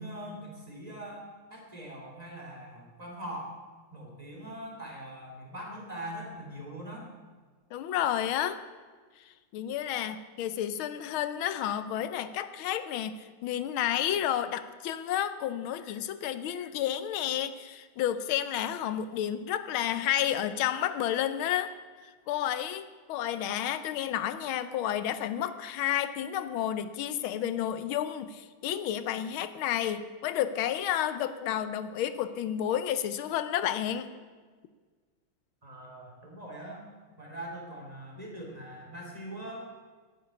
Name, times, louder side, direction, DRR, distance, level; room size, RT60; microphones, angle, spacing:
voice 1, 0.0-3.6 3.9-7.1 35.6-36.9 37.2-39.6, right 1 dB, 20° right, -1 dB, 3.0 m, -42 dB
voice 2, 7.7-8.6 9.5-21.7 22.3-34.1, left 10 dB, 85° left, 12 dB, 1.5 m, -31 dB
10.0 x 9.8 x 9.4 m, 1.5 s
omnidirectional pair, 2.2 m